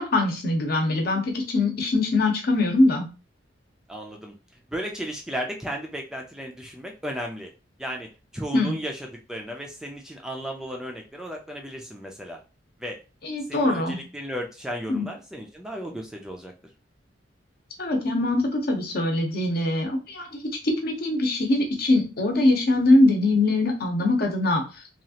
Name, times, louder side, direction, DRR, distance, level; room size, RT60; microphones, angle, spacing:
voice 1, 0.0-3.1 8.5-8.8 13.2-14.0 14.9-15.1 17.8-24.6, left 2 dB, 55° left, 3 dB, 0.8 m, -22 dB
voice 2, 3.9-4.4 4.7-7.5 7.8-12.4 12.8-12.9 13.5-16.5, equal, 5° right, 1 dB, 0.4 m, -34 dB
2.9 x 2.4 x 2.8 m, 0.31 s
head